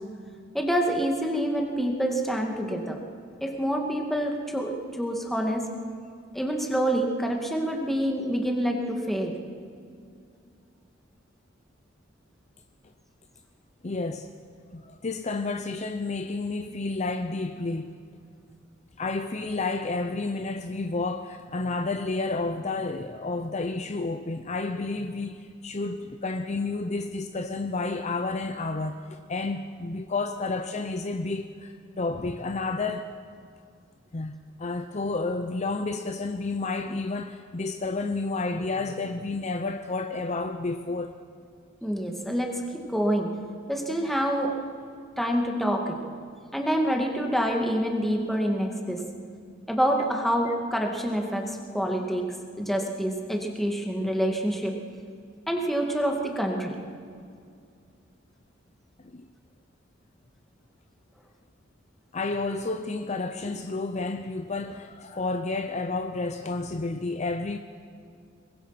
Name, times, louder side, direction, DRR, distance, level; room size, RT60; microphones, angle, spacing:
voice 1, 0.5-3.0 3.4-5.6 6.3-9.3 41.8-43.3 43.7-44.5 45.2-46.0 46.5-49.0 49.7-52.3 52.6-54.8 55.5-56.8, equal, ahead, 2.2 m, -27 dB
voice 2, 13.8-14.3 14.7-18.0 19.0-33.1 34.1-34.3 34.6-41.2 59.0-59.3 62.1-67.6, left 3 dB, 35° left, 0.7 m, -30 dB
23.0 x 20.5 x 6.0 m
head